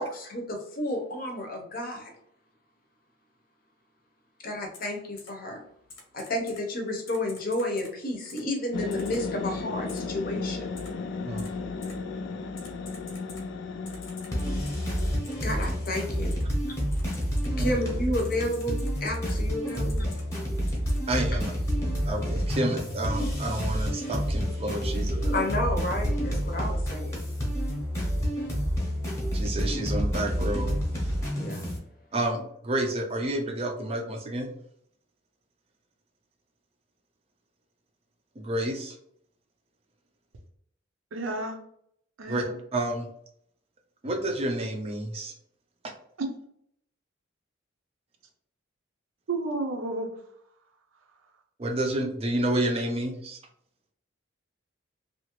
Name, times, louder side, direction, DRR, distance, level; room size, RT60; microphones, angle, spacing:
voice 1, 0.0-2.1 4.4-5.6 6.1-10.7 15.4-16.4 17.6-20.1 25.3-27.2 31.4-31.7, left 1 dB, 45° left, 0.7 m, -31 dB
Typing, 4.7-4.9 5.2-5.3 5.9-6.6 7.1-7.9 8.3-8.4 8.9-9.2 9.9-10.0 10.8-10.9 11.4-11.5 11.8-11.9 12.6-13.4 13.9-16.0 16.3-16.4 16.9-17.7 18.2-19.4 19.7-20.2 20.7-21.0, left 3 dB, 85° left, 0.8 m, -47 dB
sound 1, 8.7-15.2, left 4 dB, 65° left, 0.3 m, -35 dB
sound 2, 14.3-31.8, equal, 15° left, 0.8 m, -29 dB
voice 2, 21.1-21.5 22.1-25.4 29.3-30.7 31.0-31.1 32.1-34.5 38.4-39.0 42.3-42.4 42.7-43.1 44.0-45.3 45.8-45.9 51.6-53.4, right 1 dB, 30° right, 0.4 m, -30 dB
voice 3, 41.1-41.6 42.2-42.6 46.2-46.3 49.3-50.1, right 2 dB, 75° right, 0.6 m, -31 dB
2.8 x 2.4 x 3.0 m
head